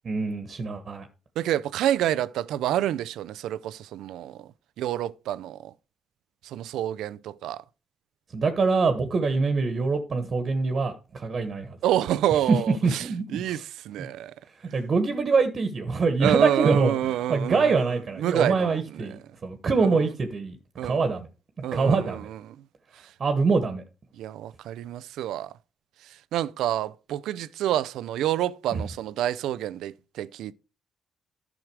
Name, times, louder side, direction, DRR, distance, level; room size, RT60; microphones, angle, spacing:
voice 1, 0.0-1.1 8.3-11.8 12.5-12.6 12.8-13.6 14.0-14.1 14.7-20.6 20.8-21.3 21.7-22.3 23.2-23.8 28.7-28.9, right 4 dB, 45° right, 1.4 m, -24 dB
voice 2, 1.4-4.5 4.8-5.7 6.4-7.6 11.8-13.1 13.3-14.3 16.2-19.1 19.8-20.0 20.8-21.0 21.6-22.2 24.2-25.5 26.3-30.5, right 12 dB, 85° right, 0.4 m, -28 dB
11.0 x 6.2 x 4.8 m
cardioid pair, 90°, 0 cm